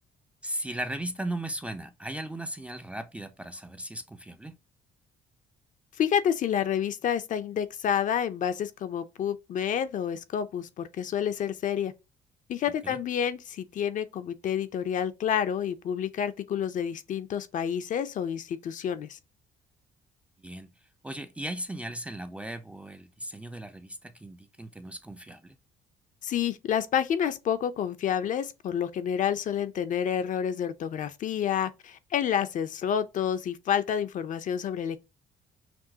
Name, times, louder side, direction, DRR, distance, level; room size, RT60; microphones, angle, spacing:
voice 1, 0.4-4.6 12.8-13.0 20.4-20.7 21.0-25.6, right 1 dB, 5° right, 0.4 m, -37 dB
voice 2, 6.0-11.9 12.5-19.2 26.2-35.0, left 8 dB, 50° left, 0.5 m, -29 dB
5.9 x 2.4 x 2.7 m
cardioid pair, 110°, 17 cm